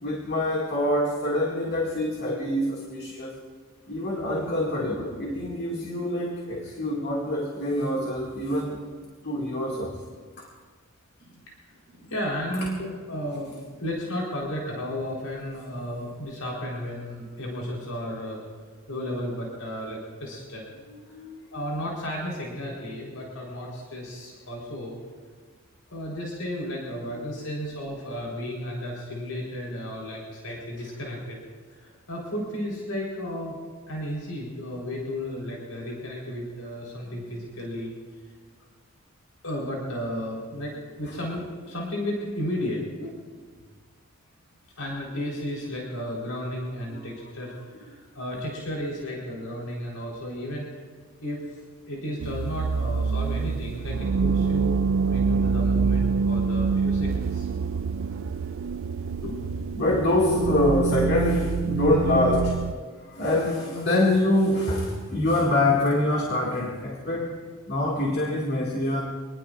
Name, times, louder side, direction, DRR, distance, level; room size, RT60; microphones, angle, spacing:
voice 1, 0.0-3.4 3.9-8.8 9.2-10.0 10.4-10.5 20.9-21.8 27.1-27.5 41.1-41.2 46.9-47.1 47.9-48.0 58.2-58.4 59.8-62.6 63.0-69.0, left 1 dB, 50° left, -2 dB, 2.2 m, -25 dB
voice 2, 11.9-18.4 18.9-20.6 21.5-25.0 25.9-31.4 31.8-33.6 33.9-37.9 39.4-43.1 44.8-50.7 51.2-51.4 51.9-54.8 55.1-57.5 59.2-59.3, equal, 85° left, -3 dB, 4.1 m, -33 dB
sound 1, 52.2-62.7, right 5 dB, 65° right, 0.4 m, -26 dB
26.5 x 20.0 x 2.5 m, 1.5 s
head